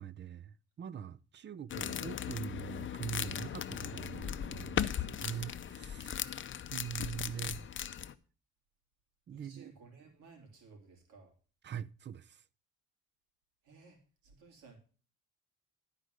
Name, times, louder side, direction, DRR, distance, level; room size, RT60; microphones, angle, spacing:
voice 1, 0.0-6.3 6.7-7.6 9.3-9.7 11.6-12.4, right 8 dB, 40° right, 0.5 m, -43 dB
sound 1, 1.7-8.1, left 9 dB, 40° left, 0.6 m, -38 dB
voice 2, 7.3-7.7 9.3-11.3 13.6-14.8, right 4 dB, 90° right, 3.2 m, -57 dB
11.5 x 5.0 x 6.5 m
cardioid pair, 90°, 30 cm